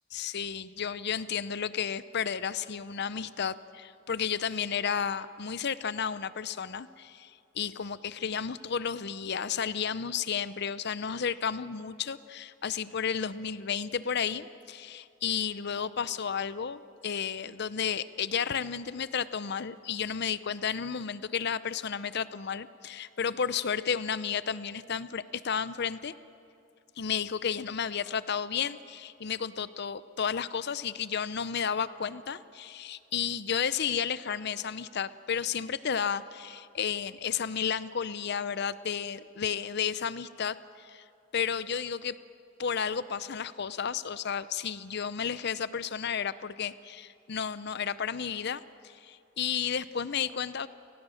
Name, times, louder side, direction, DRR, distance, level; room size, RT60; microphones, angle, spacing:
voice 1, 0.1-26.1 27.0-41.0 41.3-42.2 42.6-50.7, left 7 dB, 55° left, 16 dB, 0.6 m, -32 dB
29.5 x 18.0 x 6.4 m, 2.5 s
head